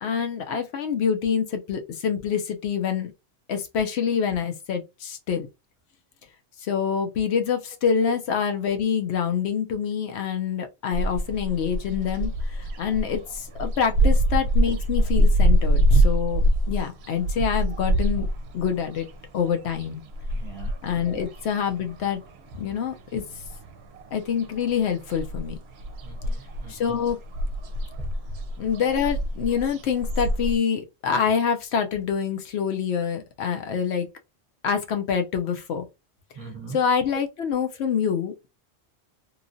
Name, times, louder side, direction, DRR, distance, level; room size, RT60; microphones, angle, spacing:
voice 1, 0.0-3.1 3.5-5.5 6.6-18.3 18.5-19.1 19.3-20.0 20.8-22.2 22.5-23.2 24.1-25.6 26.7-27.2 28.6-34.1 34.6-35.8 36.7-38.5, left 7 dB, 75° left, 0.9 m, -26 dB
sound 1, 10.9-22.5 22.8-24.1 24.4-30.6, right 1 dB, 70° right, 0.8 m, -24 dB
voice 2, 20.3-20.8 21.0-21.2 26.0-26.7 28.0-28.1 36.4-36.8, right 4 dB, 35° right, 0.7 m, -39 dB
3.0 x 2.3 x 2.5 m
omnidirectional pair, 1.1 m